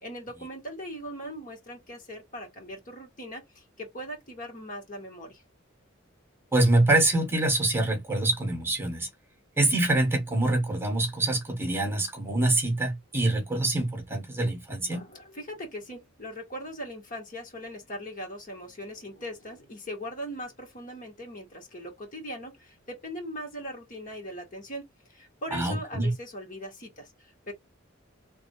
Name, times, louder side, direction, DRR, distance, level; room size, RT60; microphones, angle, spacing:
voice 1, 0.0-5.4 14.9-27.5, equal, 40° left, 2.3 m, -40 dB
voice 2, 6.5-9.1 9.6-15.0 25.5-26.1, right 2 dB, 10° right, 1.4 m, -25 dB
4.0 x 3.4 x 3.1 m
head